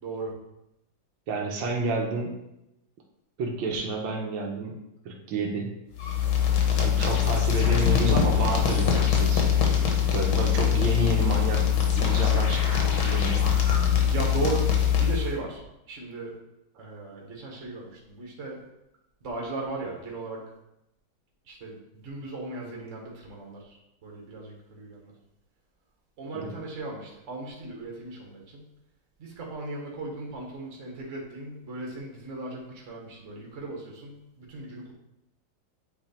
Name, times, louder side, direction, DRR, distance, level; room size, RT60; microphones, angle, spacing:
voice 1, 0.0-0.3 14.1-15.6 15.9-16.3 16.8-18.6 19.2-20.4 21.5-25.1 26.2-28.6 29.2-34.9, right 2 dB, 40° right, -1 dB, 1.7 m, -37 dB
voice 2, 1.3-2.4 3.4-5.8 6.8-9.5 10.1-11.7 11.9-13.5 26.3-26.5, right 2 dB, 75° right, 0 dB, 1.8 m, -30 dB
sound 1, 6.0-15.4, left 8 dB, 80° left, 2.0 m, -23 dB
8.0 x 4.0 x 4.4 m, 0.86 s
omnidirectional pair, 2.3 m